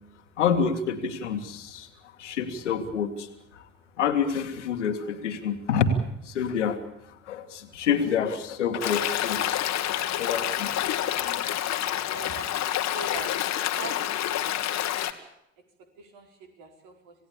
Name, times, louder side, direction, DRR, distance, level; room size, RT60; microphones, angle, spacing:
voice 1, 0.4-1.9 2.2-3.3 3.5-3.7 4.0-5.9 6.2-6.8 7.2-9.7 10.2-10.7 11.2-11.7, left 7 dB, 75° left, 8 dB, 2.1 m, -28 dB
Stream, 8.8-15.1, left 12 dB, 50° left, 1.8 m, -28 dB
voice 2, 12.1-12.6 12.9-13.3 13.7-14.0 14.3-14.6 16.0-17.1, right 4 dB, 60° right, 4 dB, 4.7 m, -41 dB
27.5 x 17.5 x 8.7 m, 0.82 s
figure-of-eight pair, 55°, 36 cm